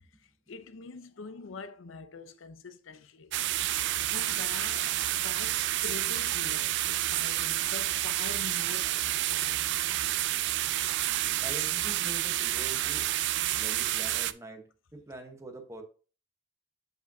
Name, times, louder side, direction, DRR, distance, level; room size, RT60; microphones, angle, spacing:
voice 1, 0.2-3.3 4.1-9.7 13.4-13.6, left 4 dB, 75° left, 0.6 m, -45 dB
sound 1, 3.3-14.3, right 14 dB, 60° right, 0.3 m, -29 dB
voice 2, 11.1-13.1 13.6-15.8, right 2 dB, 15° right, 1.0 m, -44 dB
7.7 x 5.1 x 2.6 m
head